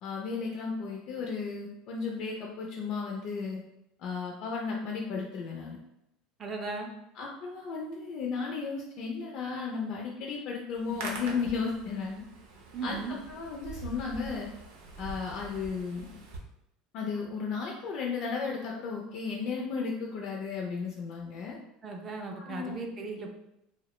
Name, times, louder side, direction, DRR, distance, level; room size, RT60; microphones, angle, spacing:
voice 1, 0.0-3.6 4.0-5.8 7.2-12.2 12.8-13.0 13.3-14.5 15.0-16.2 16.9-21.6 22.4-22.8, left 5 dB, 50° left, -1 dB, 0.3 m, -34 dB
voice 2, 6.4-6.9 12.7-13.2 21.8-23.3, right 3 dB, 25° right, 2 dB, 0.3 m, -37 dB
Hands, 10.7-16.4, right 2 dB, 90° right, 0.6 m, -44 dB
2.3 x 2.0 x 2.9 m, 0.84 s
cardioid pair, 150°, 0 cm